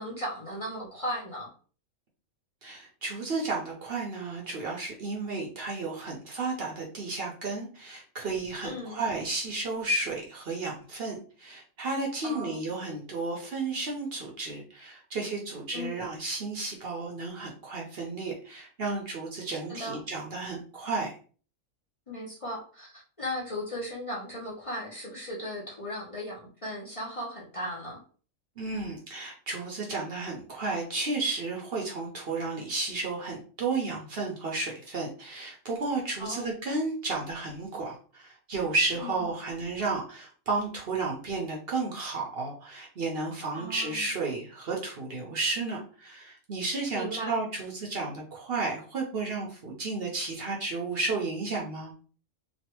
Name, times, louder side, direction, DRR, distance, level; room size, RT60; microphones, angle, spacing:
voice 1, 0.0-1.5 8.6-9.0 12.2-12.7 15.7-16.0 19.7-20.0 22.1-28.0 36.2-36.5 38.9-39.3 43.5-44.1 46.9-47.3, equal, 30° left, -4 dB, 0.8 m, -37 dB
voice 2, 2.6-21.1 28.6-51.9, right 3 dB, 55° right, -1 dB, 0.8 m, -32 dB
3.2 x 2.4 x 2.9 m, 0.40 s
omnidirectional pair, 1.3 m